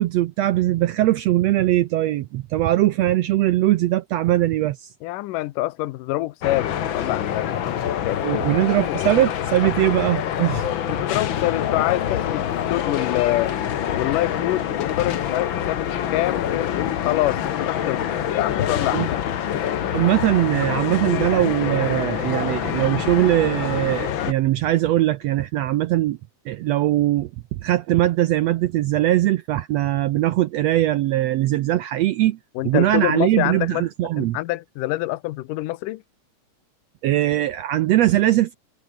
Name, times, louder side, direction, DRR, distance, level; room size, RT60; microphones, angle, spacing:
voice 1, 0.0-4.9 8.2-10.7 18.9-19.1 19.9-26.2 26.5-32.4 32.6-34.4 37.0-38.6, right 14 dB, 80° right, 1.5 m, -21 dB
voice 2, 5.0-7.8 8.1-8.5 8.9-9.1 9.6-9.9 10.7-13.5 13.9-18.0 18.3-19.3 32.6-33.9 34.2-36.0, left 17 dB, 85° left, 2.4 m, -26 dB
sound 1, 6.4-24.3, left 10 dB, 60° left, 1.4 m, -26 dB
omnidirectional pair, 3.7 m